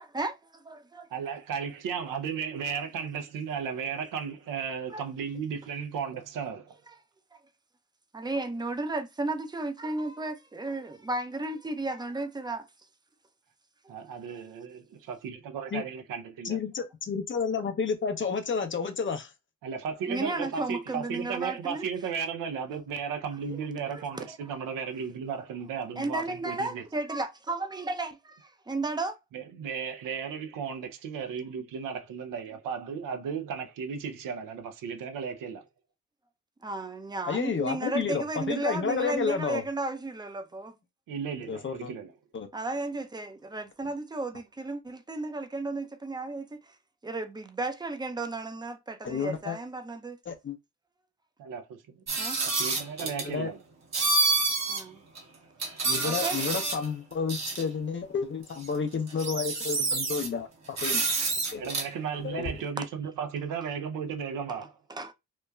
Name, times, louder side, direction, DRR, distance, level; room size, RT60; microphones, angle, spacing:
voice 1, 0.0-1.1 4.9-5.0 8.1-12.7 20.1-21.9 23.9-24.3 26.0-29.1 36.6-40.8 42.5-46.7 47.0-50.2 52.2-52.4 54.7-55.0 56.0-56.4 64.9-65.1, right 2 dB, 15° right, 0.5 m, -34 dB
voice 2, 1.1-6.8 13.9-14.8 15.1-16.6 19.6-26.8 29.3-35.6 41.1-42.1 51.4-53.6 61.6-64.7, right 6 dB, 75° right, 0.6 m, -35 dB
voice 3, 16.4-19.3 37.3-39.6 41.5-41.9 42.3-42.5 49.0-49.6 50.3-50.6 53.0-53.5 55.8-61.2 61.5-61.7 62.2-62.5, left 5 dB, 35° left, 0.6 m, -31 dB
sound 1, 52.1-53.3 53.9-54.8 55.1-55.2 55.6-56.9 57.3-57.6 58.6-58.7 59.1-60.3 60.8-61.9, right 3 dB, 50° right, 1.0 m, -28 dB
3.0 x 2.2 x 2.2 m
supercardioid pair, 50°, 33 cm